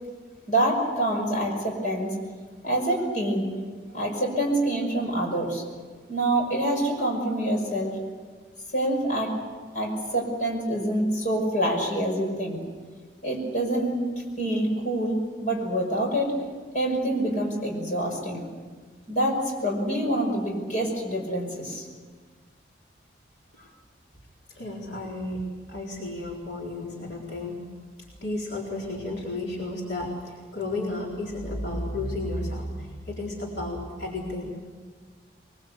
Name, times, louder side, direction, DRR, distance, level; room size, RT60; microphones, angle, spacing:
voice 1, 0.5-2.1 2.6-3.5 3.9-5.6 6.1-7.9 8.7-9.3 9.7-12.6 13.2-14.0 14.4-16.4 16.7-18.4 19.1-21.8, right 1 dB, 45° left, 0 dB, 5.7 m, -26 dB
voice 2, 24.5-25.4 25.7-27.6 28.2-34.5, left 2 dB, 70° left, -3 dB, 4.0 m, -32 dB
22.5 x 22.0 x 8.1 m, 1.5 s
head